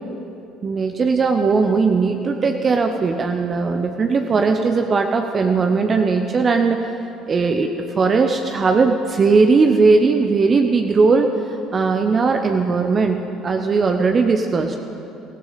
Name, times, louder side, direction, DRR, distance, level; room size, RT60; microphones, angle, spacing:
voice 1, 0.6-6.8 7.3-11.3 11.7-14.8, right 4 dB, 35° right, 5 dB, 0.8 m, -18 dB
17.5 x 16.0 x 4.2 m, 2.8 s
figure-of-eight pair, 55°, 0 cm